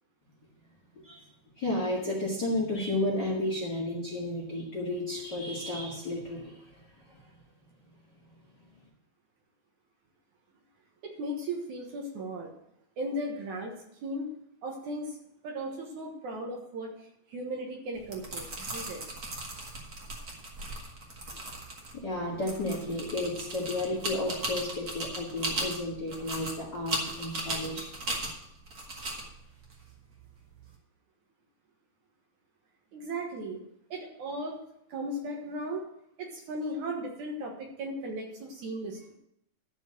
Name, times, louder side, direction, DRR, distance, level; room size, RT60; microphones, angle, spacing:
voice 1, 1.6-6.6 21.9-27.9, left 1 dB, 40° left, -2 dB, 1.8 m, -32 dB
voice 2, 11.0-12.5 13.0-13.7 14.0-14.4 14.6-15.2 15.4-19.1 32.9-33.6 33.9-34.6 34.9-35.9 36.2-39.0, right 1 dB, 60° right, 1 dB, 2.5 m, -36 dB
sound 1, 17.9-30.7, right 2 dB, 40° right, 1.5 m, -38 dB
13.0 x 4.5 x 7.6 m, 0.76 s
omnidirectional pair, 4.2 m